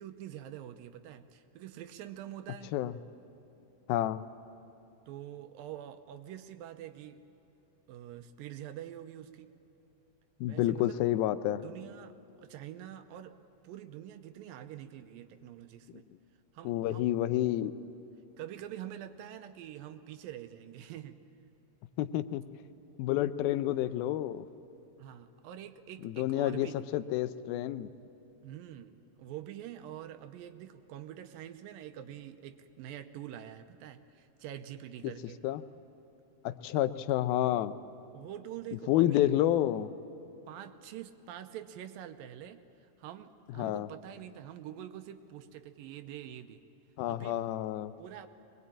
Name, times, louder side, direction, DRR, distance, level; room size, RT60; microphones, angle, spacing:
voice 1, 0.0-2.7 5.1-7.2 7.9-9.5 10.5-11.0 11.5-13.4 13.6-16.1 16.5-17.2 18.4-21.2 25.0-26.7 28.4-35.4 38.1-39.3 40.5-46.6 47.1-47.4 48.0-48.3, right 11 dB, 80° right, 9 dB, 2.4 m, -46 dB
voice 2, 3.9-4.2 10.4-11.6 16.7-17.7 22.0-22.4 23.0-24.5 26.0-27.9 35.4-35.6 36.4-37.7 38.9-39.9 43.6-43.9 47.0-47.9, left 13 dB, 90° left, 12 dB, 2.5 m, -29 dB
23.0 x 20.5 x 8.7 m, 2.9 s
omnidirectional pair, 4.2 m